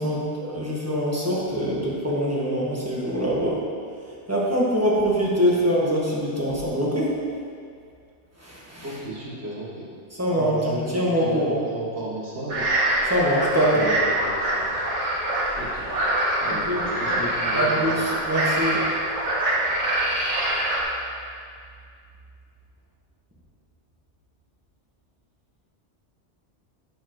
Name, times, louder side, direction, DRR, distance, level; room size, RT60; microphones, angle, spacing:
voice 1, 0.0-3.6 4.3-7.1 8.4-9.0 10.1-11.7 13.0-13.9 16.4-18.8, equal, 15° right, -6 dB, 1.3 m, -24 dB
voice 2, 8.8-9.9 10.3-10.9 11.2-12.8 13.7-14.7 15.5-15.9 16.4-16.7 17.0-17.9, right 1 dB, 65° right, -6 dB, 1.6 m, -34 dB
sound 1, 12.5-20.8, right 1 dB, 80° right, 1.7 m, -25 dB
11.0 x 5.6 x 3.1 m, 2.2 s
omnidirectional pair, 1.2 m